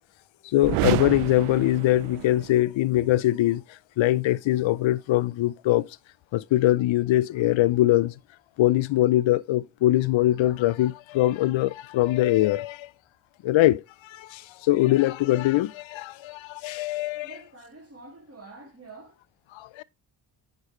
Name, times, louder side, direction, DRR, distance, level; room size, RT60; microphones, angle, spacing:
voice 1, 0.5-3.6 4.0-5.9 6.3-8.1 8.6-12.9 13.4-17.3 19.5-19.8, left 15 dB, 70° left, 0.6 m, -22 dB
sound 1, 0.6-2.6, right 16 dB, 90° right, 0.6 m, -29 dB
voice 2, 17.2-19.2, right 3 dB, 30° right, 3.4 m, -47 dB
9.6 x 5.3 x 3.1 m
supercardioid pair, 55°, 49 cm